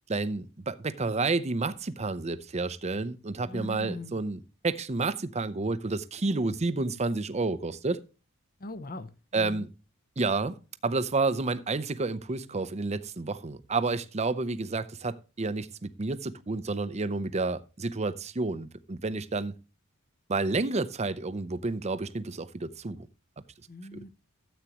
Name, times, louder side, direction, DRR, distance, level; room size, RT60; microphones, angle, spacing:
voice 1, 0.1-8.0 9.3-9.7 10.2-10.6 10.8-19.5 20.3-23.1 23.9-24.0, right 3 dB, 30° right, 0.6 m, -30 dB
voice 2, 3.4-4.2 8.6-9.6 23.7-24.1, left 1 dB, 45° left, 0.9 m, -40 dB
13.5 x 8.2 x 3.0 m
head